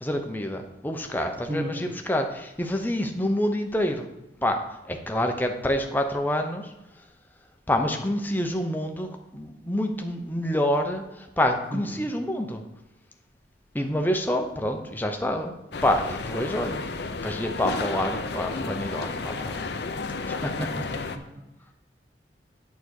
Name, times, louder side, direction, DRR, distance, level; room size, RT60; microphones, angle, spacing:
voice 1, 0.0-4.1 4.4-4.6 4.9-6.7 7.7-12.6 13.7-15.5 15.8-16.8 17.2-19.7 20.3-20.6, left 1 dB, 10° left, 4 dB, 0.8 m, -27 dB
voice 2, 1.4-2.0 11.7-12.1 16.4-16.7 20.6-21.4, right 1 dB, 30° right, -3 dB, 1.0 m, -35 dB
sound 1, 15.7-21.2, left 4 dB, 65° left, 0.6 m, -32 dB
8.6 x 4.1 x 6.4 m, 0.94 s
head